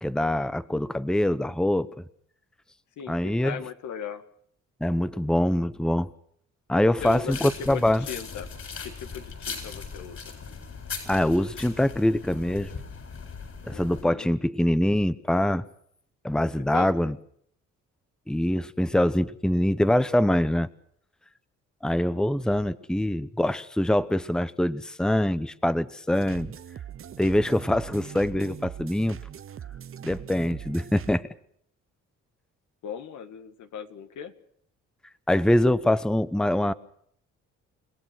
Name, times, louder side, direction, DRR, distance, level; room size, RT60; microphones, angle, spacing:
voice 1, 0.0-1.9 3.1-3.5 4.8-6.1 6.7-8.0 11.1-12.7 13.6-15.6 16.2-17.1 18.3-20.7 21.8-26.5 27.2-29.2 30.0-31.3 35.3-36.7, left 1 dB, ahead, 15 dB, 1.0 m, -24 dB
voice 2, 3.0-4.2 6.7-8.5 8.8-10.2 13.7-14.3 16.4-17.2 32.8-34.3, left 8 dB, 75° left, 8 dB, 2.1 m, -38 dB
sound 1, 7.0-14.0, left 5 dB, 50° left, 8.0 m, -39 dB
sound 2, 26.1-31.2, right 9 dB, 45° right, 0.8 m, -41 dB
30.0 x 17.0 x 6.2 m, 0.65 s
cardioid pair, 90°, 30 cm